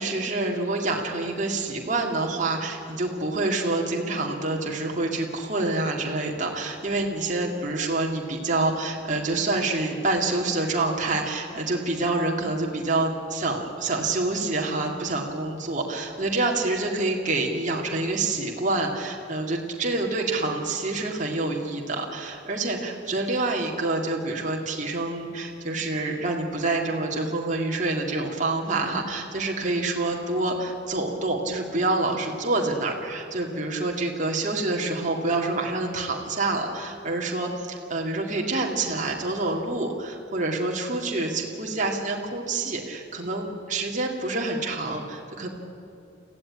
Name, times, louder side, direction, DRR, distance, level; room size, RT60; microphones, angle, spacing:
voice 1, 0.0-45.5, right 2 dB, 40° right, 0 dB, 2.2 m, -27 dB
22.0 x 15.5 x 9.8 m, 2.8 s
head